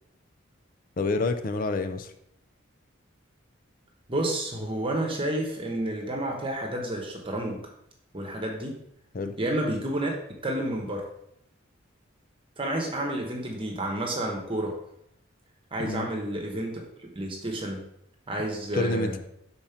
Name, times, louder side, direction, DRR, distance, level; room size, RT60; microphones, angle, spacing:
voice 1, 1.0-2.1 9.1-9.4 15.8-16.1 18.7-19.2, left 3 dB, 40° left, 8 dB, 0.4 m, -28 dB
voice 2, 4.1-7.7 8.1-8.8 9.4-10.1 10.4-11.1 12.6-14.8 15.7-17.9 18.3-19.2, right 1 dB, 25° right, 1 dB, 1.0 m, -30 dB
5.2 x 4.2 x 5.7 m, 0.77 s
head